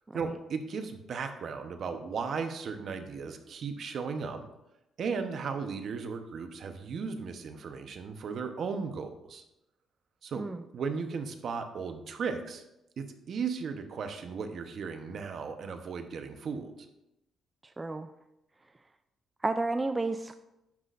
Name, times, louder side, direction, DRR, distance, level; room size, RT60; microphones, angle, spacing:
voice 1, 0.1-4.4 5.0-9.4 10.2-10.4 10.7-12.6 13.0-16.7, right 5 dB, 60° right, 7 dB, 0.9 m, -36 dB
voice 2, 17.8-18.1 19.4-20.4, right 2 dB, 20° right, 9 dB, 0.3 m, -31 dB
10.5 x 5.9 x 2.5 m, 0.88 s
cardioid pair, 90°, 0 cm